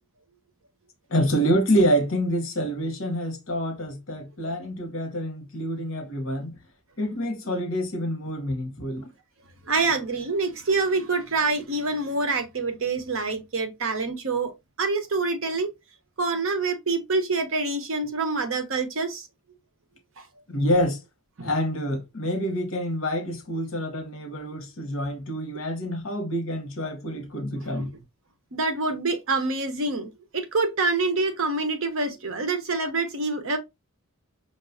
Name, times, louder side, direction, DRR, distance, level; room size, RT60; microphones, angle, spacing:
voice 1, 1.1-6.6 7.0-9.1 20.5-21.0 21.4-27.9, equal, 65° left, 0.9 m, -27 dB
voice 2, 9.6-14.5 14.8-15.7 16.2-19.3 20.2-20.3 21.4-21.5 27.6-27.9 28.5-33.6, right 3 dB, 65° right, 0.7 m, -26 dB
5.3 x 2.3 x 2.5 m
head